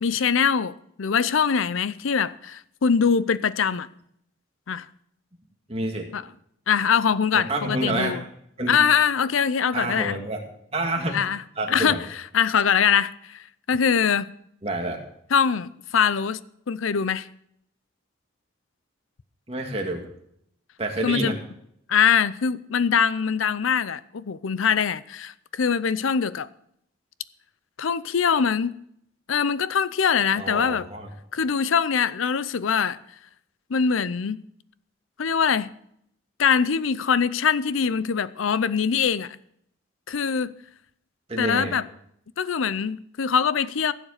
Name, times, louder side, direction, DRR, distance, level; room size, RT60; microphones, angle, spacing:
voice 1, 0.0-3.9 4.7-4.9 6.1-6.2 6.7-8.2 8.7-10.2 11.1-11.4 11.7-14.3 15.3-17.3 21.0-21.4 21.9-26.5 27.8-28.8 29.3-30.9 31.3-33.0 33.7-34.4 35.2-35.7 36.4-39.4 40.1-40.5 41.4-41.9 42.4-43.9, left 6 dB, 90° left, 0.6 m, -23 dB
voice 2, 5.7-6.1 7.3-8.2 8.6-8.8 9.7-10.4 10.7-11.2 11.6-12.0 14.6-15.0 19.5-20.1 20.8-21.4 30.3-31.1 41.3-41.7, right 1 dB, 30° right, 2.2 m, -28 dB
16.0 x 7.4 x 6.5 m
head